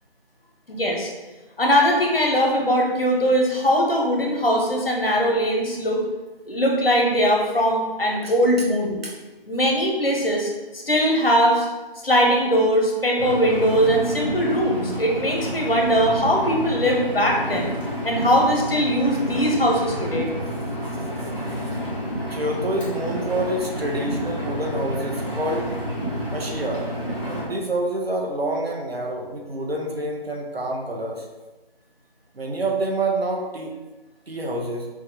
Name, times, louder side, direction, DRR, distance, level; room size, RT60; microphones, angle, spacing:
voice 1, 0.7-1.1 1.6-6.0 6.5-9.0 9.5-11.7 12.0-17.7 18.0-20.3, equal, 70° left, 0 dB, 1.2 m, -20 dB
voice 2, 8.2-8.7 9.0-9.2 22.3-25.7 26.3-26.9 27.2-31.3 32.4-33.7 34.3-34.9, right 1 dB, 80° right, 0 dB, 0.9 m, -27 dB
Engine, 13.2-27.5, equal, 30° left, 1.3 m, -29 dB
6.1 x 2.3 x 3.5 m, 1.2 s
figure-of-eight pair, 180°, 30 cm